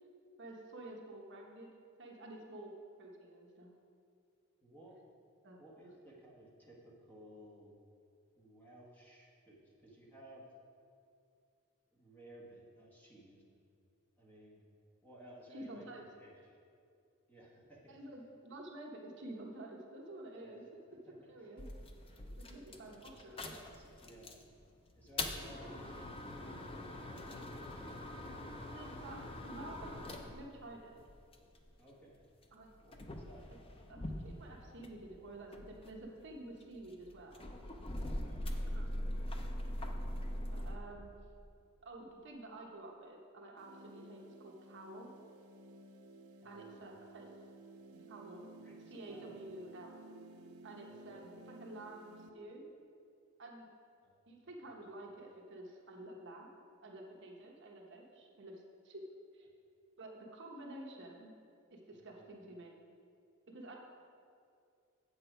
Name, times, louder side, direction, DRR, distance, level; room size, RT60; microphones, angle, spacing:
voice 1, 0.4-1.7 2.0-2.7 3.0-3.7 5.4-5.6 15.5-16.1 17.9-20.6 21.1-21.7 22.5-23.5 28.6-31.0 32.5-32.7 33.5-33.6 33.9-37.5 38.6-39.0 40.5-41.2 41.8-45.1 46.4-47.3 48.1-48.4 48.8-49.9 50.6-52.6 53.4-53.7 54.3-56.5 56.8-59.0 59.3-59.5 60.0-61.3 61.7-62.7 63.5-63.7, right 1 dB, 60° right, 0 dB, 1.1 m, -50 dB
voice 2, 4.6-5.0 5.6-7.8 8.4-10.5 11.9-13.6 14.2-14.6 15.0-15.9 16.2-16.6 17.3-18.0 20.3-20.6 21.1-21.2 22.2-22.3 22.9-24.4 24.9-26.1 26.4-28.2 31.8-32.2 32.8-33.5 38.0-39.1 46.4-46.9 48.6-49.3 50.9-51.1 54.0-54.2 61.9-62.3, right 1 dB, 10° left, -4 dB, 1.4 m, -58 dB
sound 1, 21.6-24.5 24.9-31.7 32.4-35.1 35.4-40.8, left 1 dB, 25° left, 0.6 m, -42 dB
sound 2, 43.6-52.3, right 2 dB, 80° right, 0.5 m, -55 dB
8.0 x 6.8 x 5.0 m, 2.4 s
head